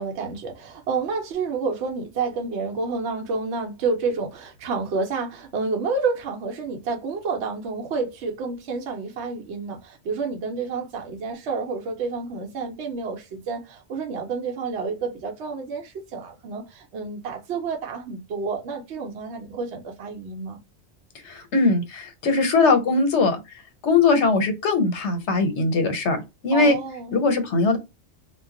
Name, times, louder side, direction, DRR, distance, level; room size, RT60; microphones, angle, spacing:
voice 1, 0.0-20.6 26.5-27.2, right 4 dB, 75° right, 0.8 m, -29 dB
voice 2, 21.2-23.4 23.8-26.2 26.4-26.8 27.1-27.8, left 3 dB, 85° left, 1.0 m, -20 dB
2.2 x 2.0 x 3.6 m
omnidirectional pair, 1.2 m